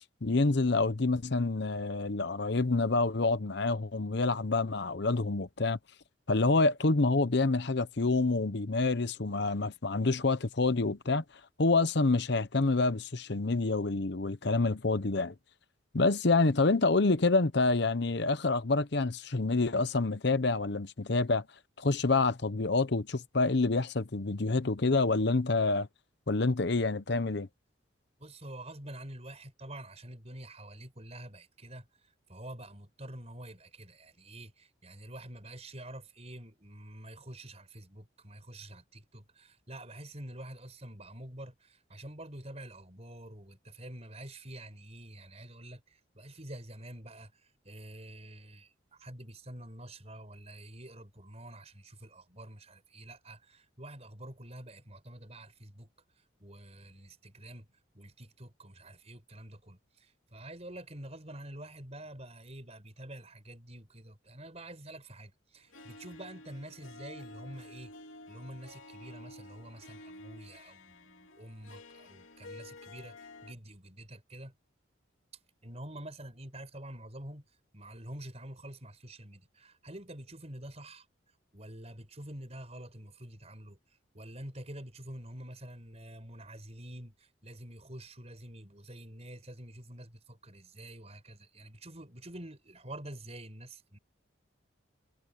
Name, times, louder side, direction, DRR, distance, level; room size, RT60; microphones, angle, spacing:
voice 1, 0.2-5.8 6.3-11.2 11.6-15.3 15.9-21.4 21.8-25.9 26.3-27.5, left 3 dB, 55° left, 0.9 m, -27 dB
voice 2, 28.2-55.9 56.4-67.9 68.3-73.2 73.4-74.5 75.6-77.4 77.7-81.1 81.5-83.8 84.1-94.0, right 1 dB, 35° right, 5.2 m, -47 dB
Harp, 65.7-73.5, left 2 dB, 85° left, 2.8 m, -51 dB
head